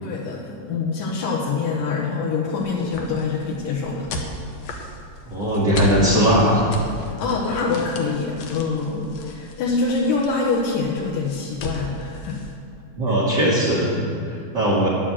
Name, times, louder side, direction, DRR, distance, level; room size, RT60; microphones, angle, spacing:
voice 1, 0.0-4.1 7.2-12.4, left 4 dB, 80° left, -4 dB, 2.5 m, -25 dB
sound 1, 2.6-12.6, equal, 65° left, 1.7 m, -35 dB
voice 2, 5.2-6.7 13.0-14.9, equal, 45° right, -7 dB, 1.5 m, -19 dB
10.0 x 6.8 x 7.4 m, 2.4 s
omnidirectional pair, 3.8 m